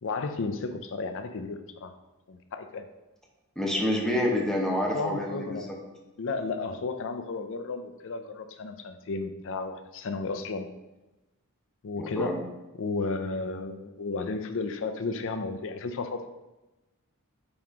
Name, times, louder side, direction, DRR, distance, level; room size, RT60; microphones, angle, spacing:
voice 1, 0.0-1.9 2.3-2.9 4.9-5.7 6.2-10.7 11.8-12.4 12.8-16.2, left 3 dB, 60° left, 8 dB, 0.5 m, -33 dB
voice 2, 3.6-5.5 12.0-12.4, left 1 dB, ahead, -1 dB, 0.9 m, -27 dB
8.6 x 3.0 x 3.6 m, 1.0 s
head